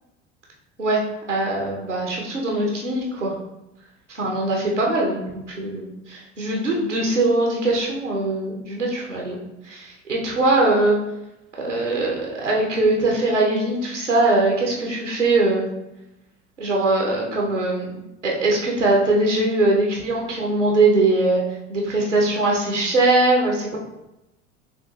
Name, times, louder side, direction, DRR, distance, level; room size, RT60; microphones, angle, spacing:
voice 1, 1.3-3.3 4.1-9.4 9.6-10.9 11.6-15.7 16.6-17.9 18.2-21.4 21.7-23.8, right 2 dB, 90° right, -2 dB, 0.8 m, -21 dB
6.6 x 2.5 x 2.4 m, 0.90 s
figure-of-eight pair, 70°, 35 cm